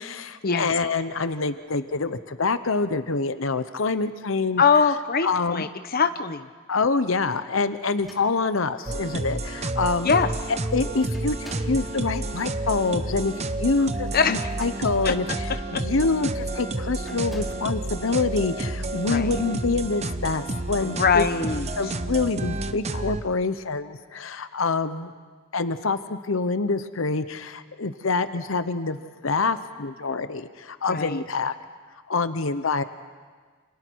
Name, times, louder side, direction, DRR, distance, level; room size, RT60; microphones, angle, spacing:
voice 1, 0.0-4.6 5.2-5.7 6.7-10.1 10.7-21.2 21.8-25.1 25.5-31.5 32.1-32.8, left 4 dB, 70° left, 11 dB, 0.9 m, -26 dB
voice 2, 4.6-6.5 10.0-10.3 14.1-14.5 15.0-15.1 15.7-15.8 19.1-19.3 20.8-21.7 30.9-31.2, left 5 dB, 45° left, 9 dB, 0.9 m, -22 dB
sound 1, 7.9-8.8 9.7-9.8 10.1-10.5 11.1-11.9 14.3-15.2 15.7-15.9 17.0-17.7, equal, ahead, 3.0 m, -46 dB
sound 2, 8.9-23.2, right 2 dB, 30° right, 0.9 m, -30 dB
29.0 x 27.5 x 4.7 m, 1.5 s
head